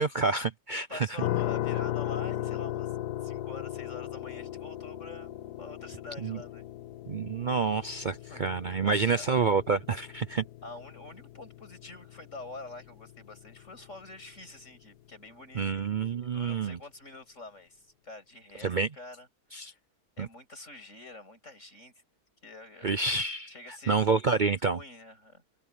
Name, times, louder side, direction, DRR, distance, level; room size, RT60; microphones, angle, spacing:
voice 1, 0.0-1.1 6.2-6.4 7.1-10.4 15.5-16.8 18.6-18.9 19.5-19.7 20.2-20.3 22.8-23.5 23.9-24.8, right 4 dB, 55° right, 0.5 m, -28 dB
voice 2, 0.9-2.9 3.2-6.7 8.2-9.3 10.6-15.9 16.3-19.8 20.2-21.9 22.4-22.9 23.5-24.0 24.3-24.4 24.7-25.4, left 2 dB, 50° left, 8.2 m, -46 dB
sound 1, 1.2-14.1, left 13 dB, 85° left, 1.3 m, -37 dB
omnidirectional pair, 1.7 m